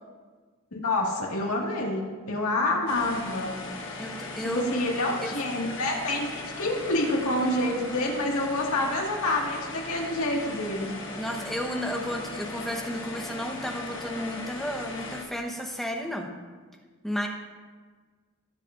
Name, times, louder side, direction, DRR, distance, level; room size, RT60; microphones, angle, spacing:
voice 1, 0.7-3.6 4.4-11.0, left 2 dB, 75° left, -2 dB, 1.9 m, -27 dB
sound 1, 2.9-15.2, left 3 dB, 55° left, 1.5 m, -38 dB
voice 2, 4.0-4.8 5.2-5.3 11.2-16.3 17.0-17.3, equal, ahead, 1 dB, 0.9 m, -32 dB
19.0 x 7.4 x 2.6 m, 1.4 s
head